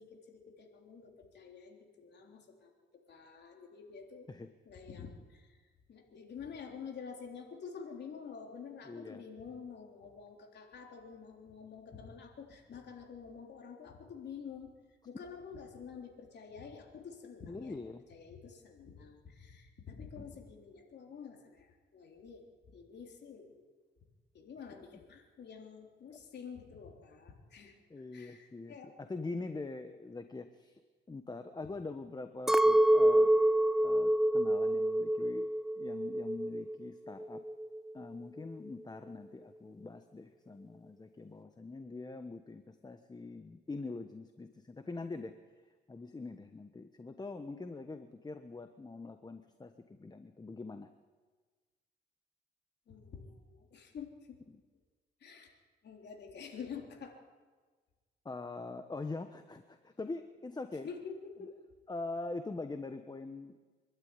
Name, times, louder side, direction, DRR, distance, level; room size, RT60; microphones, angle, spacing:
voice 1, 0.0-4.3 4.7-5.6 5.9-14.7 15.0-17.8 18.1-22.5 22.7-23.7 24.3-27.7 28.1-28.9 52.9-54.4 55.2-55.5 55.8-57.1 60.8-61.5, left 6 dB, 60° left, 2 dB, 3.7 m, -48 dB
voice 2, 8.8-9.2 17.5-18.0 26.1-26.2 27.9-30.8 31.1-33.3 33.8-35.5 35.8-37.4 37.9-45.3 45.7-50.9 58.2-60.9 61.9-63.6, left 3 dB, 20° left, 8 dB, 1.2 m, -43 dB
Chink clink, 32.5-36.8 37.1-37.9, right 1 dB, ahead, 0.5 m, -27 dB
26.0 x 12.0 x 9.7 m, 1.4 s
cardioid pair, 90°, 20 cm